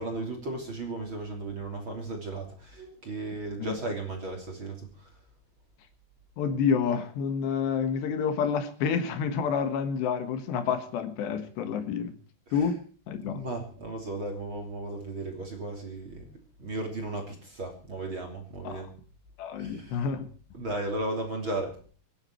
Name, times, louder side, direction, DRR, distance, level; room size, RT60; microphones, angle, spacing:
voice 1, 0.0-5.2 12.5-12.7 13.2-18.9 19.6-20.1 20.5-21.8, right 2 dB, 30° right, 2 dB, 3.1 m, -35 dB
voice 2, 6.4-12.1 12.5-12.8 13.1-13.4 18.6-18.8 19.4-20.3, left 6 dB, 75° left, 9 dB, 3.5 m, -28 dB
25.5 x 10.0 x 4.5 m, 0.43 s
omnidirectional pair, 5.2 m